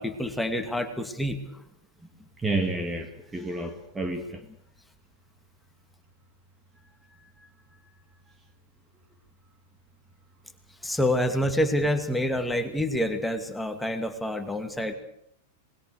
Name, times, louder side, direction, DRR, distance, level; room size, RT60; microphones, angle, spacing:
voice 1, 0.0-1.6 10.8-14.9, left 1 dB, 5° left, 7 dB, 2.6 m, -27 dB
voice 2, 2.4-4.4 7.4-7.5, right 2 dB, 10° right, 6 dB, 2.2 m, -30 dB
27.0 x 21.0 x 6.7 m, 0.71 s
figure-of-eight pair, 95°, 0 cm